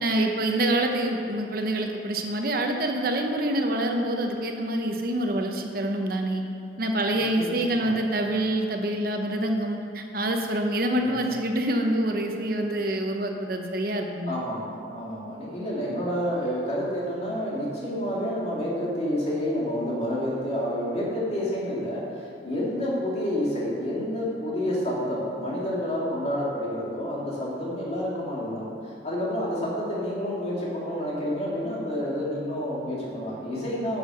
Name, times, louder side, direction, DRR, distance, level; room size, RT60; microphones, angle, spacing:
voice 1, 0.0-6.4 6.8-14.3, right 1 dB, 55° right, 3 dB, 0.9 m, -26 dB
voice 2, 7.1-8.0 10.9-11.3 14.3-34.0, equal, 35° left, -6 dB, 2.7 m, -29 dB
10.5 x 6.6 x 6.3 m, 2.5 s
head